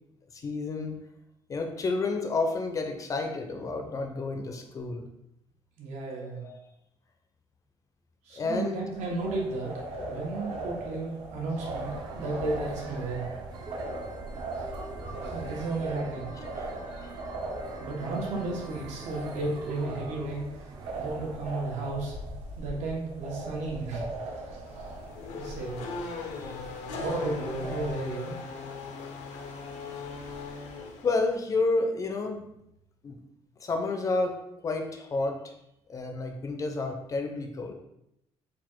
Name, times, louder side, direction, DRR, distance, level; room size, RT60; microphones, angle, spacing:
voice 1, 0.3-1.0 1.5-5.1 6.2-6.6 8.3-8.9 10.0-10.1 16.4-17.1 26.2-26.6 29.0-29.1 31.0-32.5 33.0-33.2 33.6-35.5 35.9-37.7, left 3 dB, 30° left, 4 dB, 0.5 m, -31 dB
voice 2, 5.8-6.4 8.2-13.3 15.2-16.3 17.8-20.7 20.9-22.1 22.6-24.0 25.3-25.8 26.9-28.4, right 2 dB, 75° right, -2 dB, 1.3 m, -33 dB
sound 1, 8.9-27.9, right 2 dB, 60° right, 1.0 m, -39 dB
sound 2, 11.6-21.4, right 2 dB, 35° right, 0.6 m, -43 dB
Race car auto racing / Accelerating revving vroom, 24.7-31.4, left 4 dB, 80° left, 0.7 m, -39 dB
4.1 x 2.5 x 4.4 m, 0.82 s
cardioid pair, 165°, 12 cm